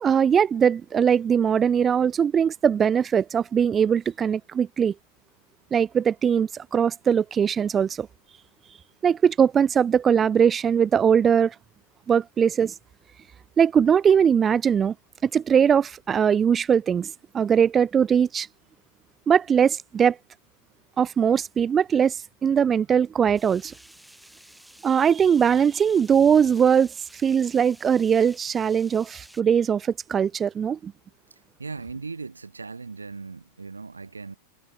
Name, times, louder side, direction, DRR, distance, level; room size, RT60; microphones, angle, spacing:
voice 1, 0.0-4.9 5.7-8.1 9.0-11.5 12.1-12.7 13.6-14.9 15.2-18.5 19.3-20.2 21.0-23.7 24.8-30.9, right 7 dB, 20° right, 0.3 m, -21 dB
sound 1, 23.4-29.4, equal, ahead, 5.8 m, -52 dB
voice 2, 31.6-34.4, right 4 dB, 75° right, 0.7 m, -38 dB
figure-of-eight pair, 90°, 0 cm